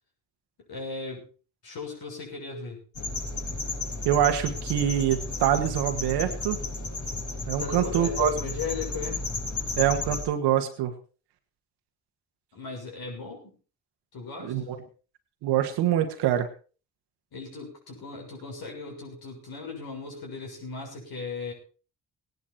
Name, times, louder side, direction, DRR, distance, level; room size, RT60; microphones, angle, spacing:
voice 1, 0.6-1.3 1.6-2.8 7.6-9.2 12.5-13.5 14.1-14.8 17.3-21.5, left 4 dB, 70° left, 0 dB, 6.7 m, -37 dB
sound 1, 2.9-10.2, left 2 dB, 50° left, 5.2 m, -33 dB
voice 2, 4.1-6.6 7.5-8.3 9.8-10.9 14.5-14.8 15.4-16.5, right 11 dB, 90° right, 7 dB, 1.9 m, -25 dB
17.5 x 11.0 x 4.4 m, 0.37 s
supercardioid pair, 50°, 39 cm